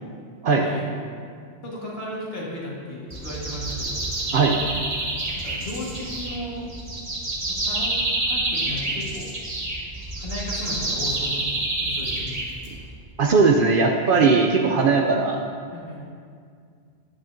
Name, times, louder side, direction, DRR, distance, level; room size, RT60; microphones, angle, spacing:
voice 1, 0.5-0.9 1.6-4.0 5.3-6.6 7.4-9.3 10.2-11.5 11.8-12.4 15.7-16.0, left 1 dB, 60° left, -5 dB, 1.7 m, -35 dB
sound 1, 3.1-12.9, right 2 dB, 35° right, 1.2 m, -28 dB
voice 2, 13.2-15.4, right 4 dB, 60° right, 2 dB, 0.6 m, -18 dB
8.9 x 8.6 x 2.6 m, 2.2 s
omnidirectional pair, 1.2 m